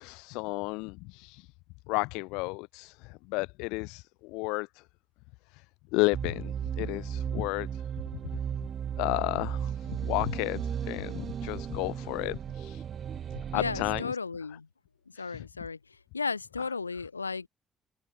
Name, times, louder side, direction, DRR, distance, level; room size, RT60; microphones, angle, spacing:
voice 1, 0.0-1.5 1.9-4.7 5.5-5.6 5.9-7.8 8.9-12.8 13.5-14.1 15.2-15.4, left 27 dB, 65° left, 0.3 m, -32 dB
sound 1, 6.1-14.0, right 8 dB, 50° right, 1.9 m, -35 dB
voice 2, 13.5-14.7 15.2-15.8 16.1-17.5, left 4 dB, 85° left, 2.0 m, -34 dB
figure-of-eight pair, 45°, 0 cm